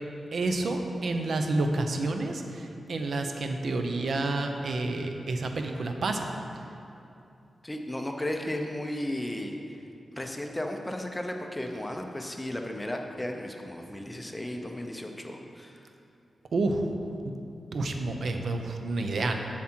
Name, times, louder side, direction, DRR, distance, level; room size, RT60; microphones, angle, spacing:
voice 1, 0.3-6.3 16.5-16.9 17.2-17.3 17.7-19.4, right 2 dB, 60° right, 4 dB, 0.6 m, -29 dB
voice 2, 7.6-9.8 10.1-15.9 19.1-19.3, left 1 dB, 10° left, 3 dB, 0.5 m, -35 dB
7.4 x 7.4 x 4.4 m, 2.7 s
wide cardioid pair, 170°, 0 cm